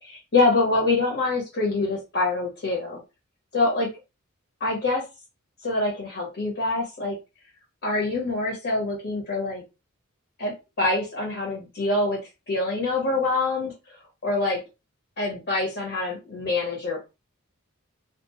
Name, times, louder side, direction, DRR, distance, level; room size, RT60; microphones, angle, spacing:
voice 1, 0.0-3.0 3.5-3.9 4.6-5.0 5.6-7.2 7.8-9.6 10.4-12.2 12.5-14.6 15.2-17.0, left 2 dB, 55° left, -3 dB, 1.2 m, -25 dB
2.4 x 2.3 x 3.0 m, 0.27 s
head